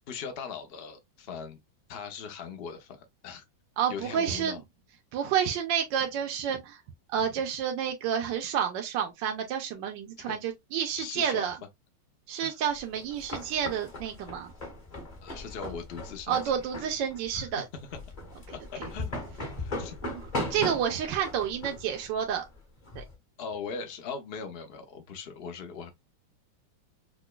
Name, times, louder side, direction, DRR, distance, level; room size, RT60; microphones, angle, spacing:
voice 1, 0.1-1.6 1.9-3.4 3.9-4.6 10.2-10.4 11.0-11.5 12.4-12.6 15.2-16.4 17.3-17.5 18.5-19.1 19.6-19.9 20.5-20.6 23.4-25.9, left 5 dB, 65° left, 0.5 m, -40 dB
voice 2, 3.8-4.6 5.1-6.8 7.1-11.6 12.3-14.5 16.3-17.6 20.0-20.2 20.5-22.4 22.9-23.0, right 8 dB, 80° right, 1.3 m, -30 dB
sound 1, 12.7-23.1, left 1 dB, 30° left, 0.9 m, -38 dB
4.8 x 2.2 x 2.3 m
omnidirectional pair, 2.0 m